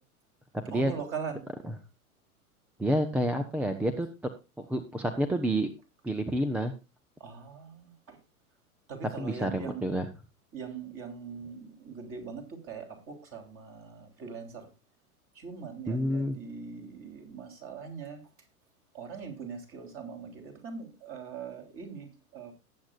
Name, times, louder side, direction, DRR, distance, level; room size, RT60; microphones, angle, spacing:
voice 1, 0.7-1.5 7.2-8.2 8.9-9.9 10.5-14.7 15.4-18.2 18.9-22.5, right 6 dB, 30° right, 5 dB, 3.5 m, -41 dB
voice 2, 2.8-4.1 4.7-5.7 6.0-6.7 9.2-10.1 15.9-16.4, right 1 dB, 5° right, 9 dB, 0.4 m, -28 dB
18.5 x 8.3 x 2.4 m, 0.27 s
figure-of-eight pair, 95°, 45 cm